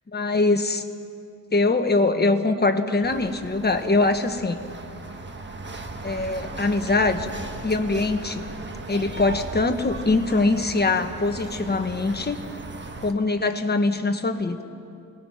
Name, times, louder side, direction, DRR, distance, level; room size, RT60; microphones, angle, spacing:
voice 1, 0.1-0.8 1.5-4.6 6.0-7.3 7.6-8.4 8.9-12.4 13.0-14.6, left 3 dB, 30° left, 6 dB, 1.3 m, -23 dB
sound 1, 3.0-13.1, right 3 dB, 30° right, 1.5 m, -37 dB
29.0 x 19.5 x 5.9 m, 2.5 s
wide cardioid pair, 130°, 35 cm